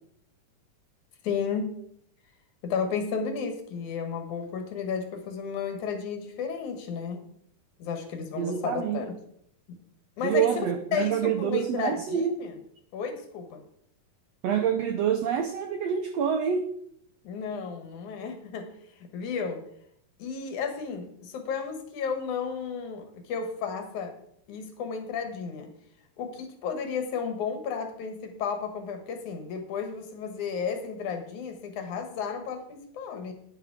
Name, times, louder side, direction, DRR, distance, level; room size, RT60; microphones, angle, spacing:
voice 1, 1.2-1.7 2.6-7.2 7.8-9.1 10.2-12.5 12.9-13.6 17.2-18.7 19.0-19.6 20.2-24.1 24.5-25.7 26.2-33.3, left 6 dB, 65° left, 6 dB, 2.7 m, -33 dB
voice 2, 8.4-9.0 10.2-12.3 14.4-16.7, right 8 dB, 80° right, 7 dB, 1.4 m, -27 dB
10.0 x 10.0 x 4.7 m, 0.68 s
omnidirectional pair, 3.9 m